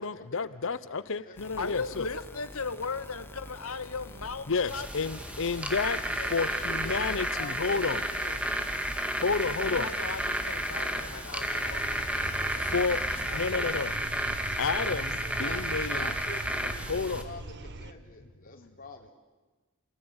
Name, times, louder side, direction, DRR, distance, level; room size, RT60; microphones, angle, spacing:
voice 1, 0.0-2.1 4.5-6.0 6.3-8.4 9.2-9.9 12.5-13.9 14.6-16.1 16.9-17.3, left 4 dB, 60° left, 16 dB, 0.8 m, -31 dB
sound 1, 1.4-13.5, left 1 dB, 10° left, 1.0 m, -46 dB
voice 2, 1.6-4.9 9.2-13.0 13.3-13.9, left 4 dB, 85° left, 10 dB, 1.8 m, -38 dB
sound 2, 4.7-17.2, right 1 dB, 5° right, 2.0 m, -32 dB
voice 3, 6.1-8.6 15.2-19.1, left 2 dB, 40° left, 2 dB, 3.8 m, -46 dB
sound 3, 11.6-17.9, right 2 dB, 55° right, 1.3 m, -41 dB
29.0 x 19.0 x 9.8 m, 1.3 s
head